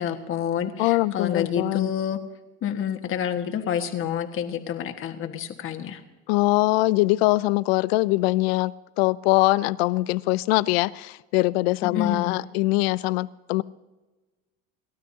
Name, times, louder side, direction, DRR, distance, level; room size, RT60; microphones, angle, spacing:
voice 1, 0.0-2.2 2.6-6.0 11.8-12.5, left 8 dB, 45° left, 1.6 m, -28 dB
voice 2, 0.8-1.9 6.3-13.6, left 20 dB, 85° left, 0.6 m, -22 dB
28.5 x 12.5 x 2.8 m
supercardioid pair, 110°, 30 cm